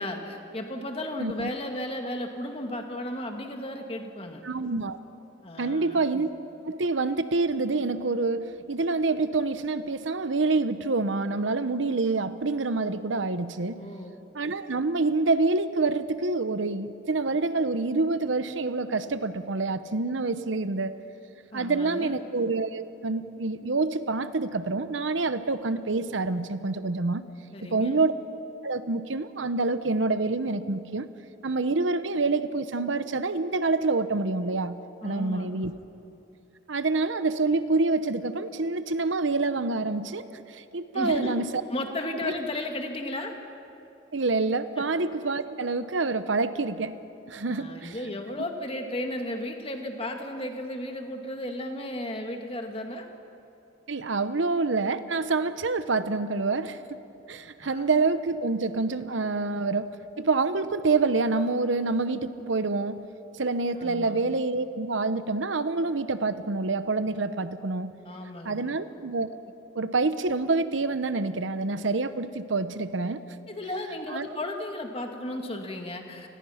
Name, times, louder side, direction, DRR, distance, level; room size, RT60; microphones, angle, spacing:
voice 1, 0.0-4.4 5.4-6.0 13.8-14.1 21.5-22.2 27.5-28.0 35.0-35.5 40.9-41.4 41.7-43.3 47.5-53.1 57.6-57.9 63.8-64.1 68.1-68.6 73.5-76.3, left 1 dB, 30° left, 4 dB, 2.0 m, -34 dB
voice 2, 1.2-1.5 4.4-5.0 5.6-6.3 6.6-14.0 14.3-20.9 21.5-27.2 27.7-28.1 28.6-31.1 31.4-34.8 35.0-35.7 36.7-41.6 42.2-42.3 44.1-47.0 47.3-48.0 53.9-57.0 57.3-63.0 63.4-67.9 68.4-69.3 69.7-73.2 74.1-74.3, right 3 dB, 75° right, 12 dB, 0.9 m, -27 dB
28.5 x 20.5 x 5.8 m, 2.9 s
head